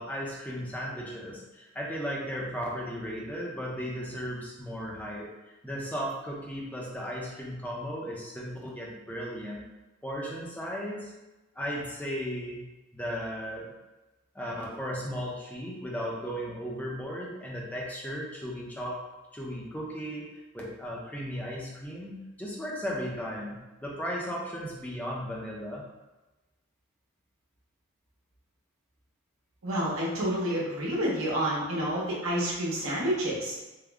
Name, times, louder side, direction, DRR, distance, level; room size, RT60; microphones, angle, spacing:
voice 1, 0.0-5.3 5.6-9.6 10.0-11.1 11.6-12.7 12.9-13.7 14.3-19.0 19.3-25.8, equal, 5° left, -3 dB, 0.5 m, -36 dB
voice 2, 29.6-33.6, equal, 75° right, -5 dB, 1.0 m, -29 dB
3.5 x 2.0 x 3.4 m, 1.1 s
head